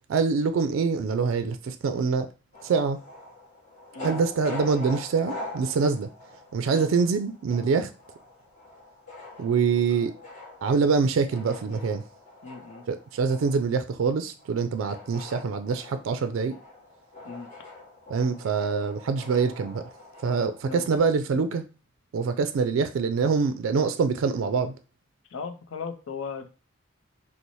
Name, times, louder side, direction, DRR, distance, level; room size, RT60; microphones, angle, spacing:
voice 1, 0.1-2.3 2.6-3.0 4.0-6.1 6.5-7.9 9.4-10.1 10.6-12.0 12.9-16.6 18.1-19.9 20.2-21.7 22.1-24.8, right 5 dB, 80° right, 0.3 m, -25 dB
sound 1, 2.5-21.0, left 2 dB, 40° left, 1.1 m, -43 dB
voice 2, 12.4-12.9 17.2-17.5 20.6-20.9 25.3-26.5, left 5 dB, 80° left, 0.5 m, -37 dB
3.0 x 2.0 x 4.0 m
head